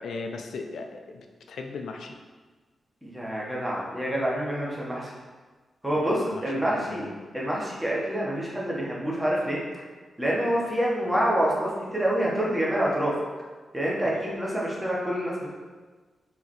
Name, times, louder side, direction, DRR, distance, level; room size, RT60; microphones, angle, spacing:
voice 1, 0.0-2.1 5.9-7.3 11.1-11.2 14.0-14.4, left 4 dB, 85° left, 4 dB, 0.4 m, -38 dB
voice 2, 3.0-5.1 5.8-7.0 7.3-9.6 10.2-13.2 13.7-15.5, equal, 10° right, -5 dB, 1.0 m, -27 dB
4.6 x 3.1 x 2.9 m, 1.3 s
wide cardioid pair, 125°, 0 cm